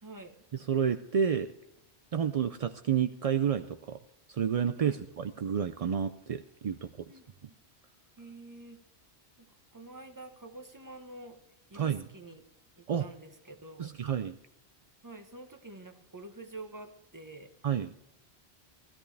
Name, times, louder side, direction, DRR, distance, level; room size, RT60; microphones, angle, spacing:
voice 1, 0.0-0.3 4.8-5.0 6.8-7.5 8.2-8.8 9.4-11.4 11.7-12.4 12.8-13.9 15.0-17.5, right 2 dB, 20° right, 6 dB, 1.1 m, -48 dB
voice 2, 0.5-1.5 2.1-4.0 4.3-6.9 11.7-12.1 12.9-13.1 13.8-14.4 17.6-17.9, right 8 dB, 50° right, 9 dB, 0.4 m, -30 dB
16.5 x 13.0 x 3.4 m, 0.82 s
omnidirectional pair, 1.1 m